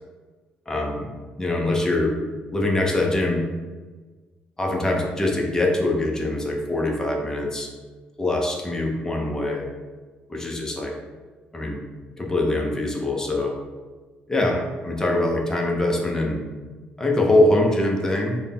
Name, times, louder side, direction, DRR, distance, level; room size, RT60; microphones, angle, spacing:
voice 1, 0.7-1.1 1.4-2.2 2.5-3.4 4.6-7.7 8.2-9.7 10.3-11.0 11.5-11.8 12.2-13.6 14.3-16.4 17.0-18.4, left 1 dB, 15° left, 0 dB, 0.7 m, -23 dB
3.9 x 2.2 x 3.6 m, 1.4 s
cardioid pair, 105°, 3 cm